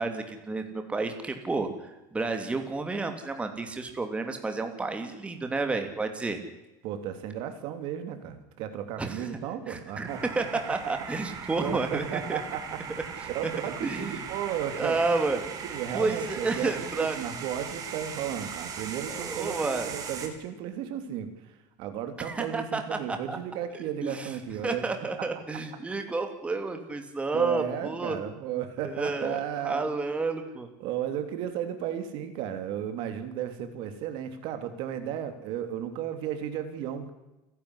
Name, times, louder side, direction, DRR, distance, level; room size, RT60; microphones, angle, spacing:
voice 1, 0.0-1.7 2.1-6.4 9.0-9.3 9.7-10.1 10.3-12.4 13.2-13.5 13.8-14.2 14.7-15.4 15.9-17.2 19.1-19.9 22.2-23.4 24.0-24.3 24.6-28.2 28.8-30.7, right 3 dB, 15° right, 6 dB, 2.9 m, -31 dB
voice 2, 6.8-10.2 10.5-10.8 11.6-12.8 13.3-15.0 15.6-24.8 27.3-29.9 30.8-37.1, right 9 dB, 60° right, 8 dB, 3.4 m, -34 dB
sound 1, 10.1-20.3, right 6 dB, 40° right, 4.1 m, -39 dB
29.5 x 12.0 x 10.0 m, 1.0 s
cardioid pair, 135°, 9 cm